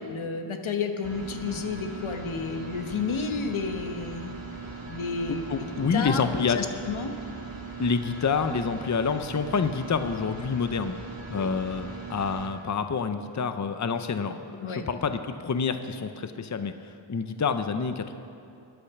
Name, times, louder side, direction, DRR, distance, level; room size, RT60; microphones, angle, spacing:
voice 1, 0.0-4.4 4.9-7.1 11.3-11.5 14.6-14.9, left 5 dB, 80° left, 5 dB, 1.2 m, -31 dB
sound 1, 1.0-12.5, right 4 dB, 45° right, 2.6 m, -39 dB
voice 2, 5.5-6.7 7.8-11.0 11.3-18.1, left 5 dB, 35° left, 9 dB, 0.7 m, -28 dB
21.5 x 8.7 x 5.9 m, 2.6 s
wide cardioid pair, 70°, 47 cm